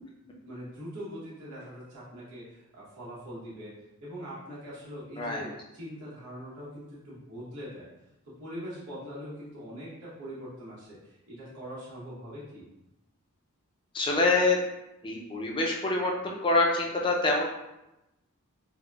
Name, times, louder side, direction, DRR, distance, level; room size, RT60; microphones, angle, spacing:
voice 1, 0.4-3.7 4.0-7.9 8.4-12.7, equal, 90° right, -8 dB, 0.9 m, -42 dB
voice 2, 13.9-14.6 15.0-16.1 16.4-17.5, left 2 dB, 20° left, -1 dB, 0.4 m, -25 dB
3.7 x 2.0 x 2.2 m, 0.94 s
head